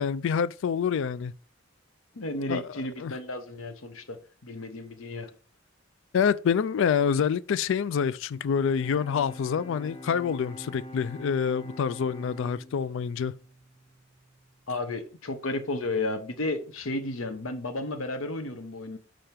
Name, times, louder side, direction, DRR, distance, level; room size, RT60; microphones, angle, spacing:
voice 1, 0.0-1.3 2.5-2.6 3.0-3.1 6.1-13.3, left 7 dB, 65° left, 0.3 m, -27 dB
voice 2, 2.1-5.3 14.7-19.0, left 2 dB, 85° left, 1.0 m, -33 dB
Bowed string instrument, 8.6-14.6, left 1 dB, 25° left, 0.8 m, -45 dB
5.1 x 4.5 x 5.8 m
head